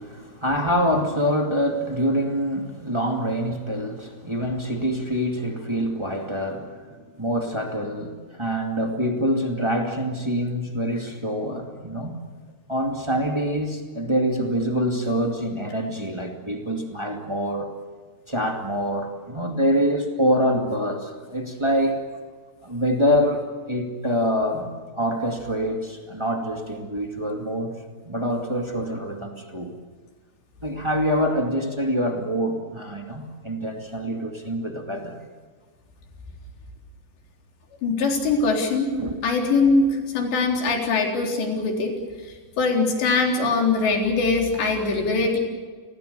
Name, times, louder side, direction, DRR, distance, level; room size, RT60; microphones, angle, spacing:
voice 1, 0.0-12.2 12.7-17.7 18.3-22.0 22.6-27.7 28.0-29.7 30.6-35.2 39.0-39.1, equal, 20° right, 2 dB, 0.7 m, -25 dB
voice 2, 37.8-38.9 39.2-42.0 42.2-45.4, left 3 dB, 85° left, 1 dB, 6.0 m, -22 dB
30.0 x 22.0 x 6.8 m, 1.5 s
omnidirectional pair, 4.9 m